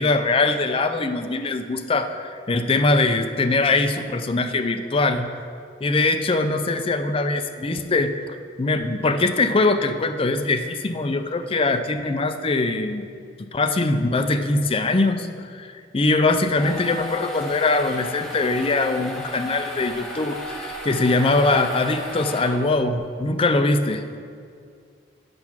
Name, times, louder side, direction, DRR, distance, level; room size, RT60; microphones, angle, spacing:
voice 1, 0.0-5.4 5.8-8.1 8.6-13.1 13.5-24.0, left 2 dB, 30° left, 8 dB, 0.5 m, -22 dB
sound 1, 16.3-23.0, left 2 dB, 5° left, 1.1 m, -34 dB
7.7 x 5.8 x 6.0 m, 2.2 s
head